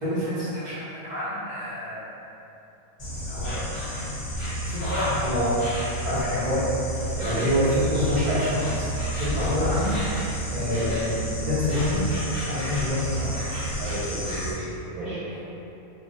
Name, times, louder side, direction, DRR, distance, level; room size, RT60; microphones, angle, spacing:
voice 1, 0.0-2.0 3.3-3.6 4.6-5.7 6.0-6.7 7.2-8.9 9.2-10.0 10.5-11.1 11.5-12.0 12.5-13.3 15.0-15.4, left 1 dB, 40° right, -12 dB, 0.7 m, -27 dB
Insect, 3.0-14.5, right 1 dB, 25° left, 0.8 m, -30 dB
voice 2, 7.2-7.5 7.9-8.0 10.5-10.9 13.8-15.3, right 2 dB, 90° right, -8 dB, 1.1 m, -34 dB
2.5 x 2.1 x 3.8 m, 2.9 s
omnidirectional pair, 1.5 m